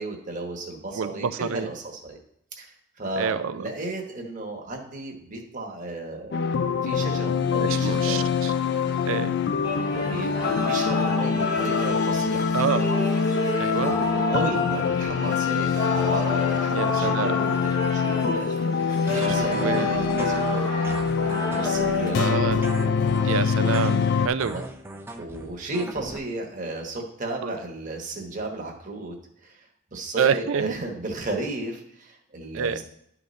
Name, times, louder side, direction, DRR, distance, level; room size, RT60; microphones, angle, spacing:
voice 1, 0.0-2.2 2.6-6.5 6.8-8.3 9.9-12.6 13.7-18.5 19.0-20.9 21.2-22.3 24.5-24.6 25.1-29.1 29.4-29.6 29.9-32.8, right 2 dB, 40° right, 1 dB, 1.2 m, -34 dB
voice 2, 1.0-1.7 3.2-3.7 7.6-8.5 9.0-9.4 12.5-12.9 13.6-14.0 16.7-17.4 19.4-19.9 22.2-22.7 23.2-24.6 27.4-27.5 30.2-30.8 32.5-32.8, right 6 dB, 70° right, 12 dB, 0.4 m, -27 dB
sound 1, 6.3-24.3, left 5 dB, 55° left, 0.4 m, -24 dB
sound 2, 9.6-22.1, left 2 dB, 20° left, 0.8 m, -31 dB
sound 3, 19.1-26.2, right 2 dB, 10° right, 0.4 m, -38 dB
11.5 x 4.0 x 3.1 m, 0.72 s
head